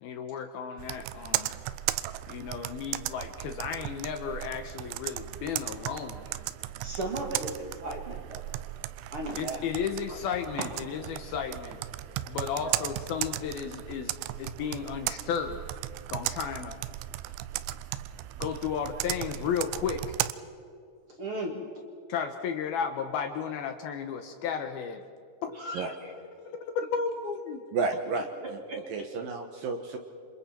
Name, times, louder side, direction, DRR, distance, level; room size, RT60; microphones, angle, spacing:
voice 1, 0.0-1.5 2.3-6.2 9.3-11.8 12.3-15.6 16.1-16.8 18.4-20.0 22.1-25.0 25.4-25.7 26.5-27.6, left 7 dB, 75° left, 6 dB, 2.5 m, -33 dB
Computer keyboard, 0.8-20.3, right 15 dB, 85° right, 3.0 m, -36 dB
voice 2, 6.8-8.4 9.1-9.6 10.1-10.2 12.6-12.9 14.8-14.9 21.2-21.6 25.5-26.1 28.4-29.1, right 2 dB, 40° right, 1 dB, 2.1 m, -37 dB
voice 3, 27.7-28.3 28.5-28.6 28.9-30.0, right 4 dB, 65° right, 4 dB, 2.4 m, -31 dB
29.0 x 27.0 x 4.5 m, 2.4 s
omnidirectional pair, 5.2 m